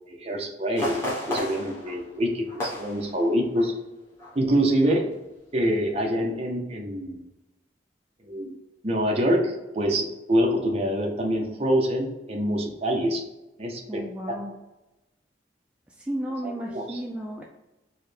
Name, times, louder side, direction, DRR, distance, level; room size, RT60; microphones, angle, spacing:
voice 1, 0.1-1.0 1.3-3.7 4.3-5.0 5.5-7.2 8.3-8.5 8.8-13.2 13.6-14.4 16.4-17.0, equal, 35° right, 1 dB, 0.7 m, -25 dB
sound 1, 0.8-3.8 4.1-4.4 4.8-5.2 5.6-5.7, equal, 15° left, 1.1 m, -34 dB
voice 2, 13.9-14.5 16.1-17.4, right 1 dB, 5° right, -1 dB, 0.3 m, -33 dB
4.5 x 2.2 x 3.3 m, 1.0 s
head